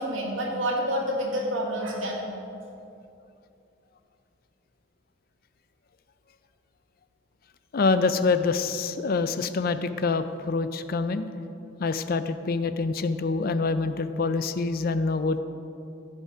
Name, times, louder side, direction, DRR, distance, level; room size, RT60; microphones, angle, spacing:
voice 1, 0.0-2.3, equal, 80° right, -2 dB, 2.0 m, -28 dB
voice 2, 7.7-11.3 11.8-15.4, left 4 dB, 50° left, 11 dB, 0.4 m, -26 dB
14.5 x 5.4 x 5.0 m, 2.7 s
head